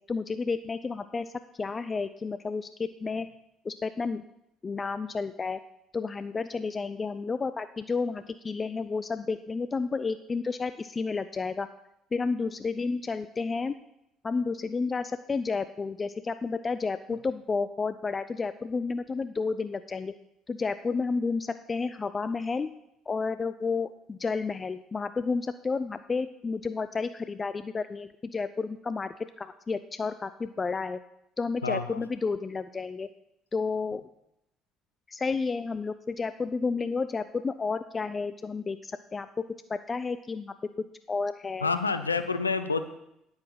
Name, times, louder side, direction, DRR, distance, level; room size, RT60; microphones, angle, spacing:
voice 1, 0.1-1.3 1.6-3.3 3.6-4.2 4.6-5.6 5.9-11.7 12.1-13.7 14.2-20.1 20.5-22.7 23.1-31.0 31.4-33.1 33.5-34.0 35.1-39.3 39.7-40.5 41.1-41.7, left 4 dB, 30° left, 12 dB, 0.4 m, -31 dB
voice 2, 31.6-32.0 41.6-42.8, left 4 dB, 90° left, 11 dB, 0.5 m, -28 dB
9.8 x 8.7 x 5.7 m, 0.82 s
figure-of-eight pair, 55°, 0 cm